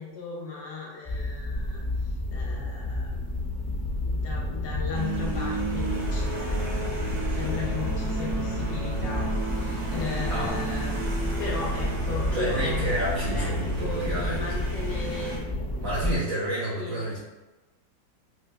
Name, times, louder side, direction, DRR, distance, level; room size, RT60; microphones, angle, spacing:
voice 1, 0.0-1.8 2.3-3.2 4.1-7.0 7.3-10.9 11.4-12.9 13.3-15.5 16.7-17.2, left 5 dB, 70° left, -2 dB, 1.2 m, -36 dB
sound 1, 1.0-16.2, left 1 dB, 25° left, 0.5 m, -30 dB
sound 2, 4.9-15.4, right 2 dB, 85° right, 1.7 m, -33 dB
voice 2, 12.3-14.6 15.8-17.2, right 1 dB, 60° right, -8 dB, 1.0 m, -30 dB
4.4 x 2.6 x 2.2 m, 1.1 s
omnidirectional pair, 2.1 m